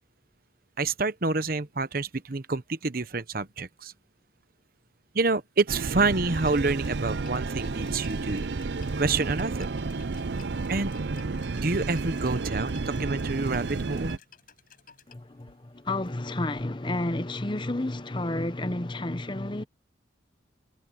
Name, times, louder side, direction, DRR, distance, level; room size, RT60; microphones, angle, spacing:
voice 1, 0.8-3.9 5.1-8.4 9.0-9.7 10.7-11.0 11.5-14.2, right 3 dB, 50° right, 1.0 m, -28 dB
sound 1, 5.7-14.2, right 3 dB, 70° right, 0.6 m, -31 dB
sound 2, 6.2-15.2, left 8 dB, 50° left, 6.9 m, -56 dB
voice 2, 15.1-19.6, left 2 dB, 25° left, 0.9 m, -31 dB
head